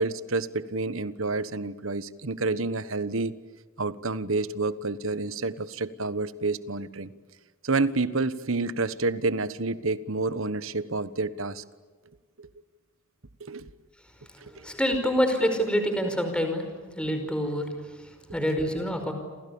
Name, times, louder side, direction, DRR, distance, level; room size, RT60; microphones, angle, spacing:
voice 1, 0.0-3.4 3.8-7.1 7.6-11.6 12.4-12.5 13.4-13.7 14.6-14.7, right 3 dB, 70° right, 15 dB, 1.3 m, -29 dB
voice 2, 14.4-16.6 16.9-19.1, equal, 5° left, 6 dB, 4.9 m, -27 dB
28.5 x 28.0 x 7.2 m, 1.5 s
head